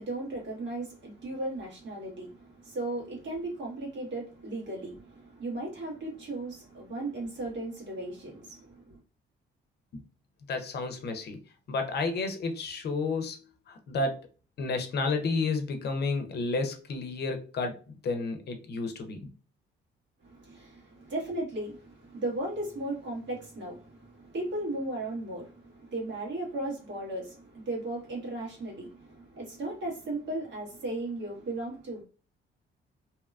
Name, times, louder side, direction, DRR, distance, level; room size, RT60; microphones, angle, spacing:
voice 1, 0.0-9.0 20.2-32.0, right 2 dB, 65° right, 1.4 m, -36 dB
voice 2, 10.5-11.4 11.7-14.2 14.6-17.8 18.0-19.3, left 3 dB, 55° left, 0.6 m, -31 dB
2.8 x 2.2 x 2.4 m
cardioid pair, 90°, 20 cm